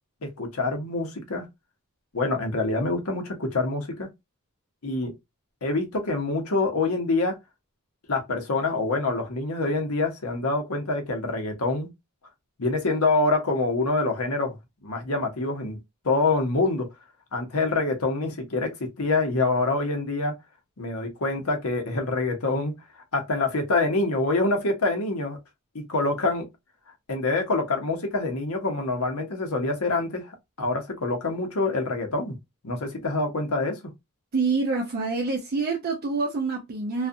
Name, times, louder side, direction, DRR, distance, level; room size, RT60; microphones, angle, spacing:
voice 1, 0.4-1.5 2.1-4.1 4.8-5.1 5.6-7.4 8.1-11.9 12.6-14.6 14.8-15.8 16.0-16.9 17.3-20.3 20.8-22.7 23.1-25.4 25.7-26.4 27.1-30.2 30.6-32.4 32.6-33.8, left 3 dB, 70° left, 0.9 m, -26 dB
voice 2, 34.3-37.1, right 4 dB, 45° right, 0.5 m, -26 dB
2.4 x 2.3 x 2.6 m
head